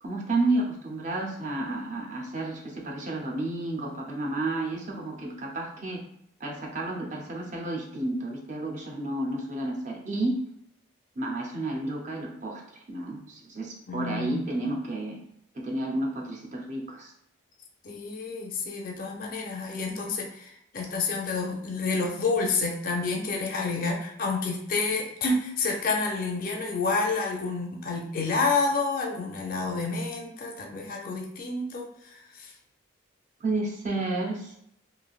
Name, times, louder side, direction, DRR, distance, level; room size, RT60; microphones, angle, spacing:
voice 1, 0.0-6.0 6.4-10.4 11.2-15.2 15.5-17.1 33.4-34.6, right 2 dB, 40° right, 0 dB, 0.5 m, -31 dB
voice 2, 13.9-14.5 17.8-32.5, left 3 dB, 45° left, 1 dB, 0.5 m, -29 dB
3.2 x 2.6 x 2.3 m, 0.74 s
head